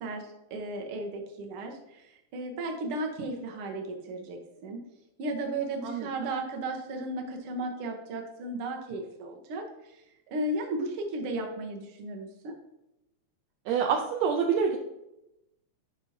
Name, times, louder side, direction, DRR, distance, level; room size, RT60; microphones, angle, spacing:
voice 1, 0.0-4.8 5.2-9.6 10.3-12.5, right 2 dB, 60° right, 2 dB, 1.7 m, -35 dB
voice 2, 13.7-14.8, right 6 dB, 75° right, 1 dB, 1.8 m, -26 dB
10.5 x 5.3 x 2.8 m, 0.89 s
omnidirectional pair, 3.5 m